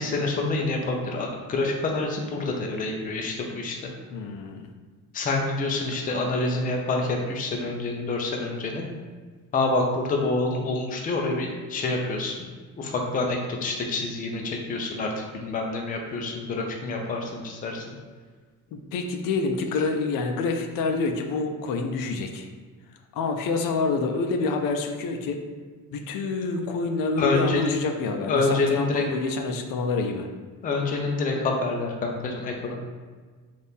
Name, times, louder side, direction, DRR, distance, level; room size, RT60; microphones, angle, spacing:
voice 1, 0.0-3.8 5.1-8.9 9.5-12.4 12.8-15.1 15.4-17.8 27.2-27.8 28.3-29.0 30.6-32.8, left 3 dB, 25° left, 1 dB, 0.4 m, -27 dB
voice 2, 4.1-4.7 18.7-22.5 23.1-25.4 25.9-30.3, left 3 dB, 80° left, 4 dB, 0.5 m, -27 dB
4.2 x 2.5 x 3.4 m, 1.5 s
cardioid pair, 175°, 33 cm